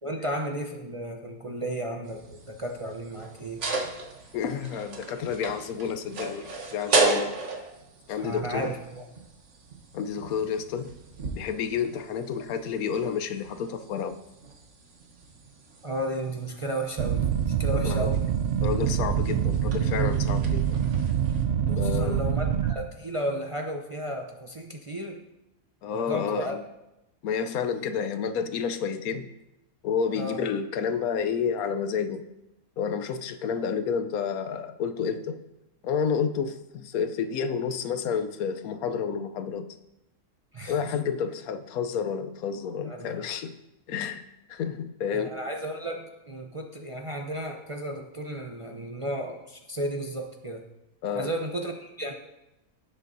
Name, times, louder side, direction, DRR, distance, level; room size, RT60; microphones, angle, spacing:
voice 1, 0.0-3.6 8.2-9.0 15.8-17.3 17.6-18.2 21.7-25.2 25.9-26.5 30.1-30.4 40.5-40.8 42.8-43.1 45.1-50.6 51.1-52.1, right 1 dB, 35° right, 2 dB, 0.6 m, -33 dB
sound 1, 2.0-21.4, right 3 dB, 55° right, 1.5 m, -35 dB
voice 2, 4.3-7.3 8.1-8.8 9.9-10.9 11.3-14.2 17.7-18.1 18.6-20.8 21.7-22.2 25.8-26.6 27.2-29.3 29.8-32.2 32.8-35.4 35.8-39.7 40.7-43.5 43.9-45.4 51.0-51.3, left 6 dB, 80° left, 10 dB, 1.2 m, -30 dB
sound 2, 17.0-22.8, right 9 dB, 80° right, 0.5 m, -25 dB
16.5 x 7.5 x 2.7 m, 0.93 s
omnidirectional pair, 1.5 m